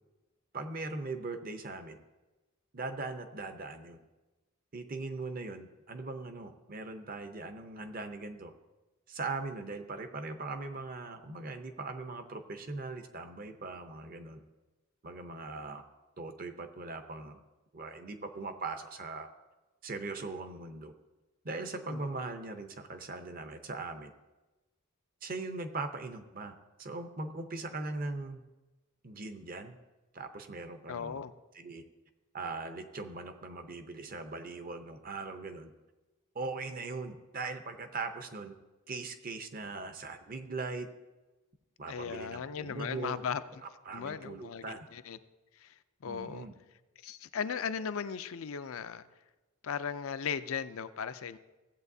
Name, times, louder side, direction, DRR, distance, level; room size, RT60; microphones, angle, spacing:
voice 1, 0.5-2.0 2.7-4.0 4.7-8.5 9.1-14.4 15.0-15.8 16.2-17.4 17.7-19.3 19.8-20.9 21.4-24.1 25.2-28.4 29.0-29.7 30.1-31.2 31.6-31.8 32.3-35.7 36.3-38.5 38.9-40.9 41.8-43.2 43.6-44.8 46.0-46.5, right 3 dB, 40° right, 7 dB, 0.7 m, -40 dB
voice 2, 30.9-31.3 41.9-43.4 43.9-45.2 45.5-46.5 47.0-49.0 49.6-51.4, left 7 dB, 70° left, 12 dB, 0.5 m, -37 dB
16.0 x 8.0 x 2.7 m, 1.1 s
head